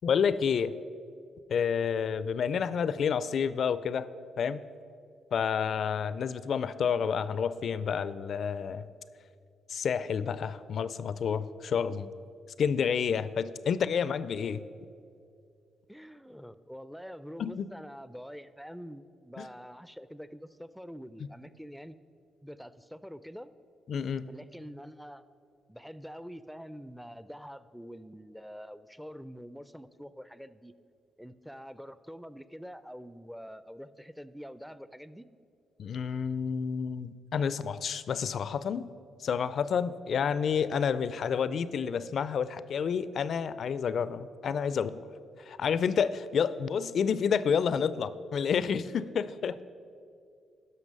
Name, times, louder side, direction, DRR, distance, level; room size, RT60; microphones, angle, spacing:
voice 1, 0.0-0.7 1.5-4.1 4.4-4.6 5.3-8.9 9.7-12.1 12.6-14.6 17.4-17.7 19.4-19.5 23.9-24.3 35.8-38.9 39.2-45.1 45.4-49.5, left 7 dB, 60° left, 15 dB, 0.4 m, -29 dB
voice 2, 15.9-22.0 22.4-23.5 24.3-25.2 25.7-30.7 31.2-35.3 40.2-40.5 49.4-49.6, equal, ahead, 14 dB, 0.5 m, -46 dB
12.0 x 5.6 x 5.3 m, 2.4 s
supercardioid pair, 50°, 0 cm